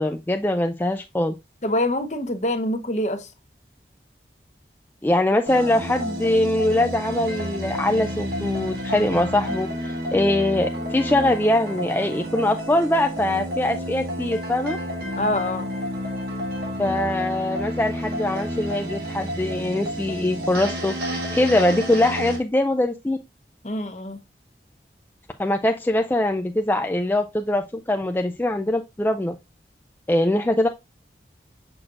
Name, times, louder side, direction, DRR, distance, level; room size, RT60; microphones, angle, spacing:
voice 1, 0.0-1.4 5.0-14.8 16.8-20.9 21.3-23.2 25.4-29.4 30.1-30.7, left 1 dB, 10° left, 0.3 m, -22 dB
voice 2, 1.6-3.3 15.2-15.7 23.6-24.2, left 1 dB, 40° left, 0.8 m, -25 dB
sound 1, 5.5-22.4, equal, 60° right, 2.0 m, -30 dB
6.4 x 6.0 x 2.5 m
head